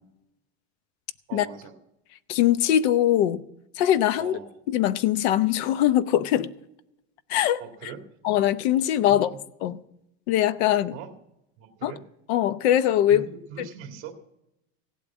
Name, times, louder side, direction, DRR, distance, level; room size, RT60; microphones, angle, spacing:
voice 1, 1.3-1.8 4.2-4.5 7.6-8.0 9.1-9.4 10.9-11.1 11.6-12.0 13.1-14.1, right 7 dB, 40° right, 1.9 m, -41 dB
voice 2, 2.3-3.4 3.8-4.4 4.7-6.5 7.3-7.6 8.2-9.3 9.6-9.8 10.3-10.9 11.8-11.9 12.3-13.2 13.6-13.7, left 11 dB, 75° left, 0.8 m, -22 dB
17.0 x 8.5 x 7.2 m
cardioid pair, 175°, 33 cm